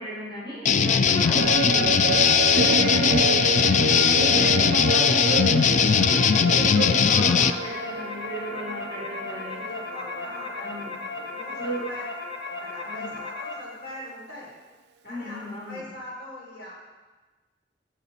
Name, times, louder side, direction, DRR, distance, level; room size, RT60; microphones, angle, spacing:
voice 1, 0.0-1.9 2.5-3.3 4.0-6.1 6.5-9.6 10.6-11.0 11.6-11.9 12.8-13.1 15.0-15.8, right 1 dB, 25° left, -9 dB, 3.9 m, -33 dB
sound 1, 0.7-7.5, left 6 dB, 45° left, 0.4 m, -20 dB
sound 2, 1.4-10.9 11.2-11.3, right 5 dB, 65° right, 0.3 m, -30 dB
voice 2, 2.4-3.2 6.9-7.0 9.5-12.1 12.5-14.6 15.0-16.7, left 1 dB, 60° left, -6 dB, 3.8 m, -42 dB
sound 3, 5.8-13.5, left 3 dB, 80° left, 2.0 m, -36 dB
14.0 x 7.2 x 4.3 m, 1.2 s
head